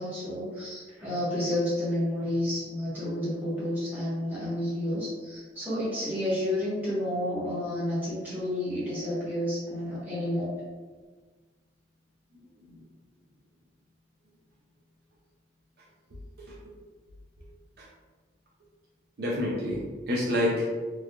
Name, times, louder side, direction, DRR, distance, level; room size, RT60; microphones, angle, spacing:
voice 1, 0.0-10.5, left 1 dB, 10° right, -11 dB, 1.1 m, -30 dB
voice 2, 19.2-20.9, left 1 dB, 55° right, -5 dB, 0.5 m, -28 dB
3.2 x 2.4 x 2.2 m, 1.4 s
head